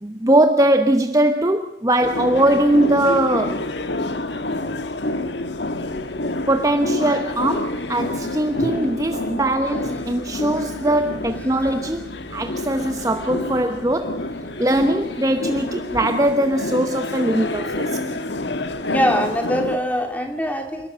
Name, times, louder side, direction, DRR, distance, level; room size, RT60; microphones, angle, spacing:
voice 1, 0.0-3.7 6.5-14.2 14.6-18.0, right 1 dB, 20° right, 0.9 m, -20 dB
sound 1, 2.0-19.8, left 2 dB, 80° left, 1.5 m, -28 dB
voice 2, 18.8-20.9, equal, 10° left, 2.8 m, -23 dB
28.5 x 12.5 x 8.7 m
head